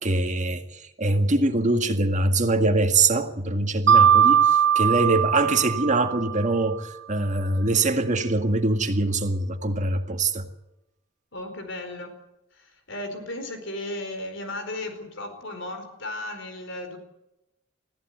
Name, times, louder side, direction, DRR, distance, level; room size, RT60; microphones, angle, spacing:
voice 1, 0.0-10.5, right 2 dB, 40° right, 1.9 m, -23 dB
Mallet percussion, 3.9-6.6, right 8 dB, 60° right, 0.7 m, -20 dB
voice 2, 11.3-12.1 12.5-17.0, left 1 dB, 65° left, 4.6 m, -35 dB
20.5 x 15.0 x 9.4 m
head